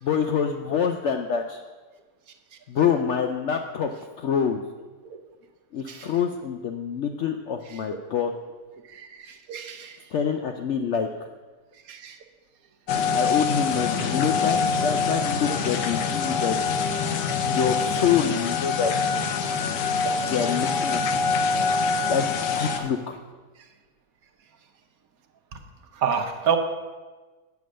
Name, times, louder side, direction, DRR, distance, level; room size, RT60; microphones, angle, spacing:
voice 1, 0.0-1.6 2.7-3.9 4.2-4.6 5.7-8.3 10.1-11.1 13.1-16.6 17.5-19.2 20.2-21.4 22.1-22.3 22.6-23.2, left 7 dB, 70° left, 5 dB, 0.7 m, -26 dB
voice 2, 9.3-9.9 11.9-12.2 20.0-20.1 26.0-26.6, right 7 dB, 65° right, 6 dB, 1.2 m, -27 dB
sound 1, 12.9-22.8, left 5 dB, 85° left, 1.4 m, -25 dB
8.3 x 6.9 x 6.2 m, 1.3 s
omnidirectional pair, 1.8 m